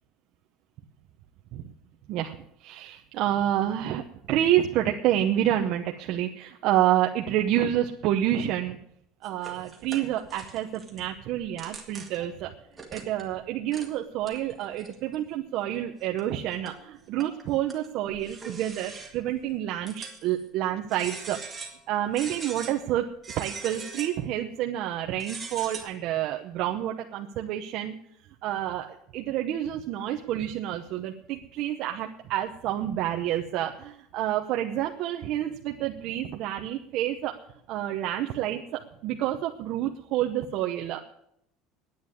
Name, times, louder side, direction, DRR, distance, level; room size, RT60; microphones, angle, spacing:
voice 1, 2.1-4.0 4.3-8.8 9.2-12.5 12.9-21.4 21.9-23.1 23.3-27.9 28.4-37.4 37.7-41.0, right 12 dB, 45° right, 2 dB, 0.9 m, -28 dB
sound 1, 9.2-11.0 11.4-12.3 12.7-13.4 13.7-13.9 14.2-15.2 15.7-15.8 16.2-16.8 17.2-19.3 19.9-20.4 20.9-21.8 22.1-22.8 23.2-24.3 25.1-25.8, right 4 dB, 10° right, 1.8 m, -41 dB
10.0 x 9.1 x 9.6 m, 0.72 s
cardioid pair, 175°, 0 cm